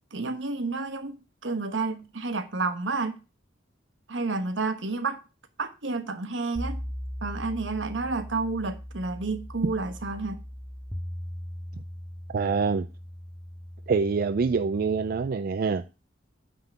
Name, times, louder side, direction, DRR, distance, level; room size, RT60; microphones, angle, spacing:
voice 1, 0.1-1.2 1.4-3.2 4.1-5.2 5.6-6.8 7.2-10.4, right 3 dB, 75° right, 1.1 m, -30 dB
sound 1, 6.6-15.3, equal, 10° right, 1.1 m, -39 dB
voice 2, 12.3-12.9 13.9-15.8, right 5 dB, 50° right, 0.4 m, -25 dB
9.3 x 3.7 x 6.9 m
head